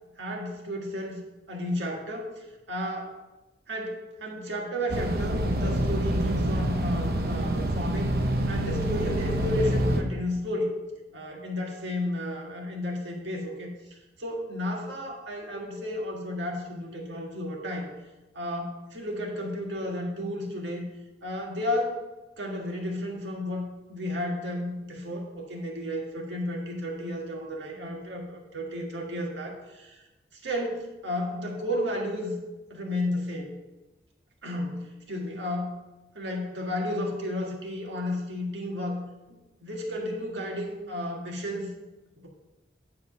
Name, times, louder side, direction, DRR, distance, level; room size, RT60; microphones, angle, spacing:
voice 1, 0.2-1.2 1.5-2.3 2.7-3.2 3.7-8.1 8.5-10.8 11.1-13.7 14.2-17.9 18.3-20.8 21.2-22.0 22.4-30.0 30.3-32.4 32.7-33.5 34.4-35.8 36.1-39.0 39.6-41.7 42.2-42.3, left 1 dB, 85° right, 0 dB, 1.7 m, -32 dB
sound 1, 4.9-10.0, right 1 dB, 55° right, 0.8 m, -26 dB
9.8 x 3.8 x 6.0 m, 1.1 s
head